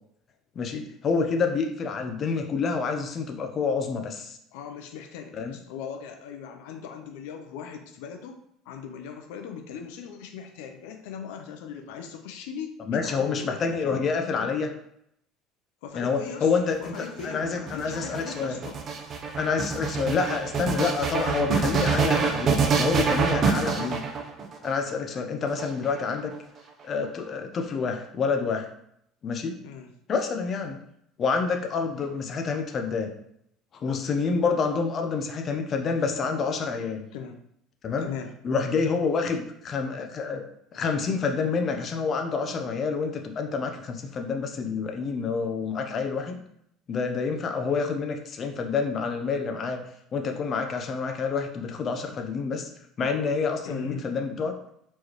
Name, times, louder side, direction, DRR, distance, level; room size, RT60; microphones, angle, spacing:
voice 1, 0.6-4.4 5.3-5.5 12.9-14.7 15.9-18.6 19.4-24.0 24.6-26.3 26.8-28.6 29.2-29.6 30.1-30.8 31.2-33.1 33.8-37.0 37.8-38.1 38.4-40.4 40.7-46.4 46.9-49.8 50.1-52.7 53.0-54.5, left 5 dB, 40° left, 4 dB, 0.6 m, -28 dB
voice 2, 4.5-8.4 8.7-14.0 14.4-14.5 15.8-16.5 16.8-18.8 29.6-29.9 37.1-37.4 38.0-38.3 53.6-54.1, left 7 dB, 85° left, 5 dB, 0.5 m, -39 dB
sound 1, 16.7-24.7 25.5-26.3, right 5 dB, 40° right, 0.6 m, -26 dB
4.4 x 3.2 x 3.0 m, 0.74 s
supercardioid pair, 105°, 0 cm